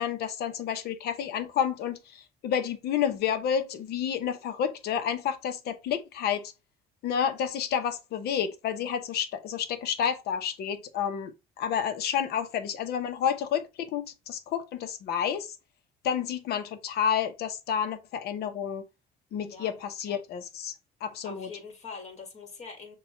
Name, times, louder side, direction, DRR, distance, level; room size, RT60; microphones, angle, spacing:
voice 1, 0.0-6.5 7.0-15.6 16.0-18.8 19.3-20.7 21.0-21.5, left 8 dB, 70° left, 0.8 m, -30 dB
voice 2, 21.2-23.0, left 4 dB, 40° left, 1.9 m, -43 dB
6.7 x 2.4 x 3.0 m
cardioid pair, 110°, 17 cm